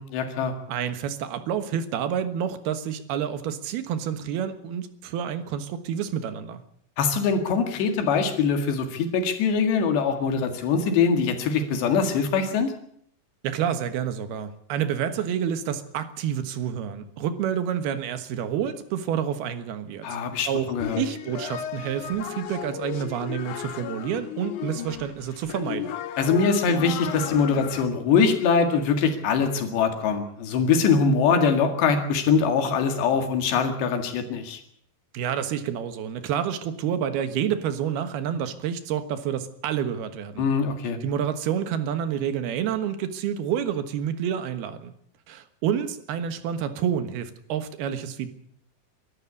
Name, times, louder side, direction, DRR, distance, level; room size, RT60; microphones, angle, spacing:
voice 1, 0.0-0.5 7.0-12.7 20.0-21.0 26.2-34.6 40.4-41.0, left 5 dB, 85° left, 5 dB, 4.2 m, -23 dB
voice 2, 0.7-6.6 13.4-20.1 20.5-25.9 35.1-40.5 41.0-44.9 45.3-48.3, right 9 dB, 70° right, 10 dB, 3.2 m, -29 dB
sound 1, 20.8-27.9, left 10 dB, 65° left, 2.3 m, -34 dB
23.5 x 13.0 x 8.5 m, 0.67 s
omnidirectional pair, 4.8 m